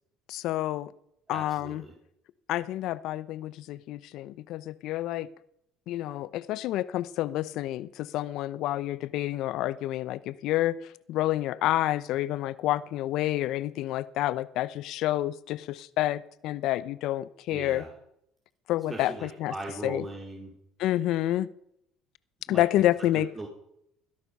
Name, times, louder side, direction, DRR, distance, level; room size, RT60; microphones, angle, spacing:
voice 1, 0.3-0.9 1.3-1.8 2.5-5.3 5.9-10.8 11.1-17.8 18.7-19.5 19.8-20.0 20.8-21.5 22.5-23.3, left 14 dB, 65° left, 17 dB, 0.8 m, -29 dB
voice 2, 1.3-1.9 17.5-17.9 18.9-20.5 22.5-22.6 23.0-23.5, right 2 dB, 25° right, -1 dB, 4.5 m, -39 dB
21.5 x 11.0 x 5.5 m, 0.78 s
hypercardioid pair, 70°, 0 cm